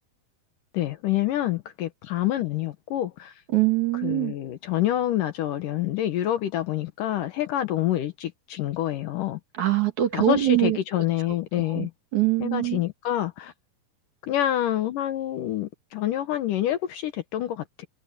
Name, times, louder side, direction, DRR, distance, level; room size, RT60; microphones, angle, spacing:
voice 1, 0.7-3.3 4.0-9.4 10.1-11.9 12.4-13.5 14.2-17.9, left 13 dB, 70° left, 2.4 m, -27 dB
voice 2, 3.5-4.3 9.6-10.8 11.5-12.8, right 14 dB, 55° right, 3.3 m, -23 dB
omnidirectional pair, 4.4 m